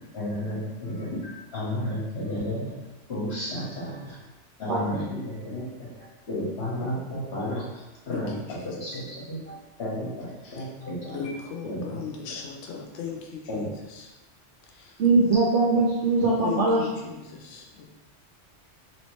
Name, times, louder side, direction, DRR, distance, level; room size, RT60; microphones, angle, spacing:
voice 1, 0.1-2.7 3.1-4.2 4.6-11.4 11.6-12.4 13.5-13.7, left 1 dB, 60° left, -5 dB, 1.3 m, -33 dB
voice 2, 8.6-9.0 10.4-10.6 11.1-13.7 14.0-14.1 14.7-14.9 16.4-17.8, left 6 dB, 80° left, 1 dB, 0.9 m, -37 dB
voice 3, 15.0-16.9, right 3 dB, 70° right, -4 dB, 0.9 m, -21 dB
3.1 x 2.9 x 3.1 m, 1.0 s
omnidirectional pair, 1.2 m